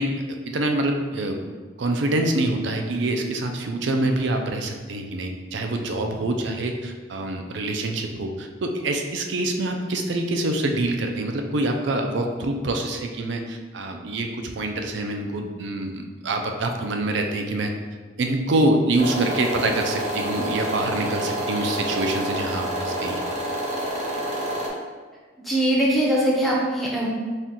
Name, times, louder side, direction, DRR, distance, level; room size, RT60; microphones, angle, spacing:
voice 1, 0.0-1.4 1.8-17.7 18.2-23.2, right 2 dB, 65° right, 4 dB, 0.4 m, -25 dB
sound 1, 19.0-24.7, right 1 dB, 35° right, 0.8 m, -28 dB
voice 2, 25.4-27.1, right 1 dB, ahead, -5 dB, 0.7 m, -21 dB
4.3 x 2.4 x 3.7 m, 1.4 s
head